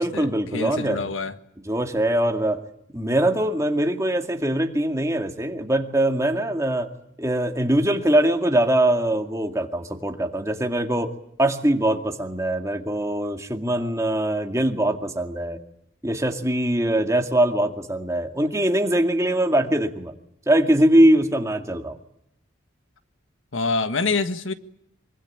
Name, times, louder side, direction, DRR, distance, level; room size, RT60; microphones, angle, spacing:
voice 1, 0.0-1.1 1.7-2.6 2.9-6.9 7.2-11.1 11.4-15.6 16.0-20.1 20.5-22.0, right 1 dB, 15° right, 2.2 m, -22 dB
voice 2, 0.5-1.3 23.5-24.5, left 3 dB, 80° left, 1.6 m, -25 dB
25.5 x 24.0 x 8.7 m
head